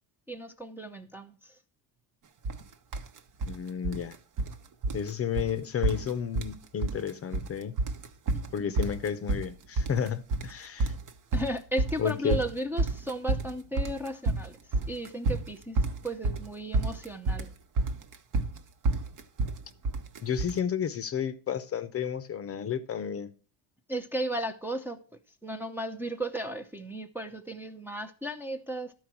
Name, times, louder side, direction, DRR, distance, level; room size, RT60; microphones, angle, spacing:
voice 1, 0.3-1.5 8.3-8.7 11.3-14.5 14.9-15.8 16.0-17.5 23.9-25.0 25.4-28.9, right 1 dB, 5° right, 0.6 m, -35 dB
sound 1, 2.4-2.6 2.9-3.6 3.8-4.6 4.8-5.1 5.4-5.5 5.8-6.6 6.8-7.5 7.8-20.6, right 2 dB, 45° right, 1.0 m, -29 dB
voice 2, 3.4-4.2 4.9-7.7 8.5-10.9 12.0-12.4 20.2-23.3, left 8 dB, 35° left, 0.7 m, -32 dB
12.5 x 4.6 x 5.9 m
cardioid pair, 115°, 43 cm